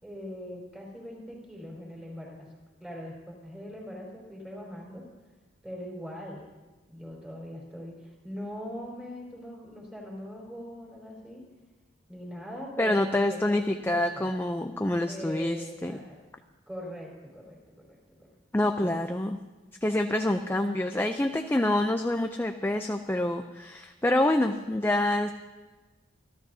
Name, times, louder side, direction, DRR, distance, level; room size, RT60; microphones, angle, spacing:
voice 1, 0.0-2.5 2.8-5.1 5.6-6.5 6.9-11.5 12.1-14.3 15.1-16.2 16.7-18.4 18.8-19.0, equal, 5° right, -4 dB, 4.5 m, -41 dB
voice 2, 12.8-15.9 18.5-19.4 19.8-25.3, left 1 dB, 10° left, 5 dB, 0.5 m, -27 dB
27.0 x 13.0 x 2.8 m, 1.3 s
head